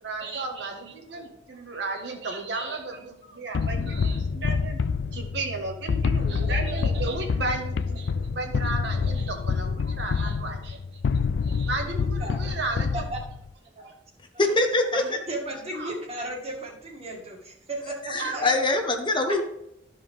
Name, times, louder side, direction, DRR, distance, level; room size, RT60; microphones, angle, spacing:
voice 1, 0.0-4.8 5.1-10.8 11.4-13.0 15.7-15.9 18.1-18.4, right 3 dB, 70° right, 2 dB, 1.5 m, -34 dB
sound 1, 3.5-13.5, left 5 dB, 65° left, 0.3 m, -27 dB
voice 2, 12.0-12.4 12.9-13.2 13.8-13.9 14.3-14.6 14.9-18.5 19.3-19.4, right 1 dB, 35° right, 0 dB, 2.0 m, -35 dB
voice 3, 14.4-15.2 18.1-19.4, left 2 dB, 25° left, 4 dB, 1.0 m, -23 dB
13.0 x 4.8 x 3.6 m, 0.80 s
head